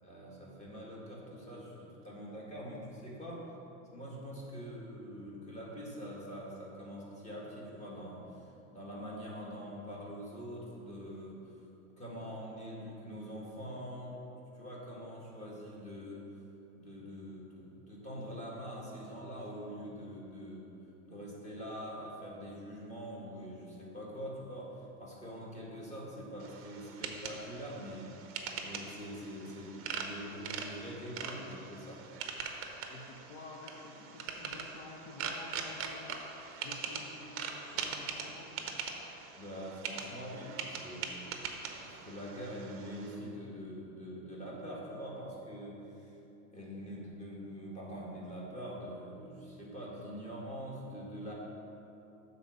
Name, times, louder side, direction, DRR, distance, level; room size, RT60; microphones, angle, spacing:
voice 1, 0.0-3.4 3.9-11.4 12.0-14.2 14.5-16.2 16.7-20.7 21.0-28.1 28.6-32.0 39.4-41.2 41.8-46.1 46.5-51.3, equal, 15° left, -4 dB, 1.7 m, -44 dB
sound 1, 26.4-43.2, right 6 dB, 30° right, 0.7 m, -42 dB
voice 2, 32.9-36.2 36.6-38.6, left 2 dB, 55° left, 0 dB, 0.9 m, -50 dB
7.0 x 4.2 x 6.1 m, 2.9 s
hypercardioid pair, 125°, 44 cm